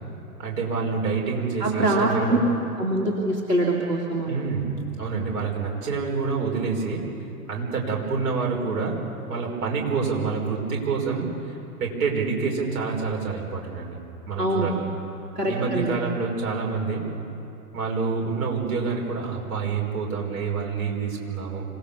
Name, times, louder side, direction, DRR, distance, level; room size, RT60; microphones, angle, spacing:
voice 1, 0.4-2.4 4.2-7.1 7.5-14.0 14.3-14.8 15.5-17.1 17.7-21.6, right 4 dB, 60° right, 0 dB, 5.3 m, -27 dB
voice 2, 1.6-2.4 2.8-4.3 14.4-14.7 15.4-16.0, right 2 dB, 90° right, -3 dB, 2.8 m, -24 dB
26.5 x 18.0 x 7.0 m, 2.9 s
figure-of-eight pair, 105°, 47 cm